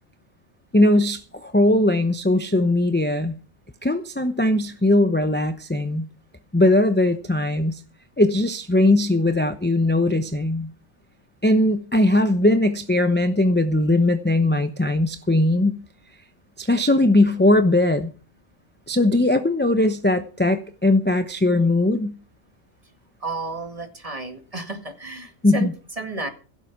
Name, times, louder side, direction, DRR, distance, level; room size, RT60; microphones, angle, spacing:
voice 1, 0.7-3.4 3.8-6.0 6.5-7.8 8.2-10.7 11.4-15.8 16.6-18.1 18.9-22.2 25.4-25.7, left 1 dB, 10° left, 8 dB, 0.6 m, -19 dB
voice 2, 23.2-26.3, right 2 dB, 25° right, 5 dB, 2.1 m, -32 dB
16.5 x 7.9 x 6.0 m, 0.39 s
omnidirectional pair, 1.4 m